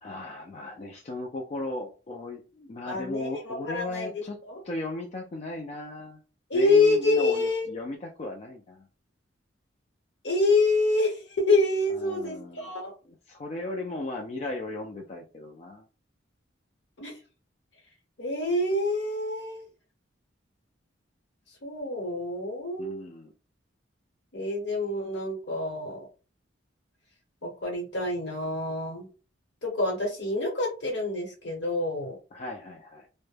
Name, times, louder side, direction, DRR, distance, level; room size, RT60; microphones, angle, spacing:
voice 1, 0.0-6.2 6.5-8.9 11.9-12.7 13.3-15.8 22.8-23.3 32.3-33.1, left 2 dB, 35° left, 1 dB, 0.3 m, -36 dB
voice 2, 2.8-4.6 6.5-7.7 10.2-12.9 17.0-17.2 18.2-19.7 21.6-23.0 24.3-26.0 27.4-29.1 29.6-32.2, left 2 dB, 65° left, 1 dB, 1.0 m, -27 dB
2.2 x 2.1 x 3.1 m, 0.34 s
head